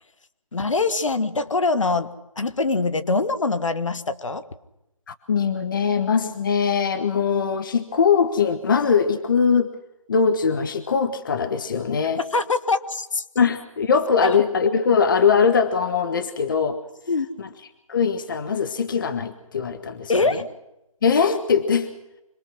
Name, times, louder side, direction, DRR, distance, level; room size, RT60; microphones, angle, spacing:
voice 1, 0.5-2.1 2.4-4.4 12.3-13.2 14.2-14.4 17.1-17.3 20.1-20.4, left 3 dB, 60° left, 11 dB, 1.6 m, -23 dB
voice 2, 5.1-9.7 10.1-12.2 13.3-16.8 17.4-17.5 17.9-20.4 21.0-21.9, left 6 dB, 35° left, 10 dB, 1.1 m, -21 dB
26.0 x 21.5 x 6.2 m, 0.92 s
figure-of-eight pair, 160°, 18 cm